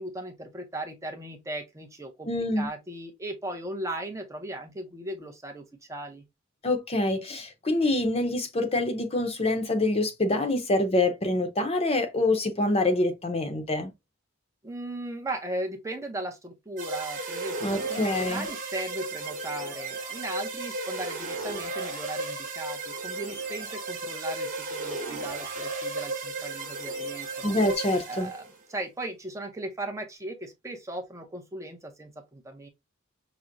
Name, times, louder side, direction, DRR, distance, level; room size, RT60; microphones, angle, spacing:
voice 1, 0.0-6.2 14.6-27.5 28.1-28.4 28.7-32.7, right 1 dB, 15° right, 0.6 m, -37 dB
voice 2, 2.3-2.7 6.6-13.9 17.6-18.5 27.4-28.3, left 2 dB, 30° left, 0.7 m, -26 dB
sound 1, 16.8-28.5, right 2 dB, 40° right, 1.0 m, -34 dB
5.8 x 2.0 x 2.5 m
head